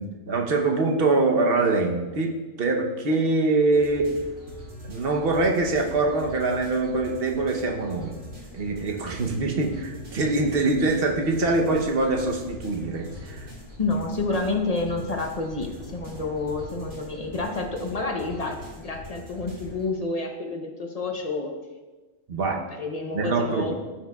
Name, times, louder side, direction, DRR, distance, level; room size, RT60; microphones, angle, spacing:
voice 1, 0.0-4.1 4.8-8.1 8.5-13.5 22.3-22.6 23.1-23.7, right 3 dB, 50° right, 2 dB, 1.0 m, -24 dB
sound 1, 3.7-19.9, left 1 dB, 75° right, 2.8 m, -42 dB
voice 2, 13.8-21.5 22.7-23.7, left 3 dB, 40° left, 3 dB, 0.7 m, -29 dB
13.0 x 5.8 x 2.3 m, 1.3 s
omnidirectional pair, 1.3 m